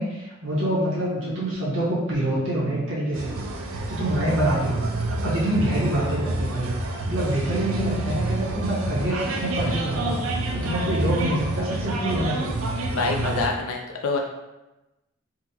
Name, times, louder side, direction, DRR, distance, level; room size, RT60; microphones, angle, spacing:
voice 1, 0.0-3.4 3.7-12.5, right 1 dB, 65° right, -7 dB, 0.8 m, -26 dB
sound 1, 3.1-13.5, right 2 dB, 85° right, 0.4 m, -28 dB
voice 2, 12.9-14.2, left 4 dB, 90° left, 1 dB, 0.3 m, -26 dB
3.8 x 2.1 x 2.8 m, 1.0 s
head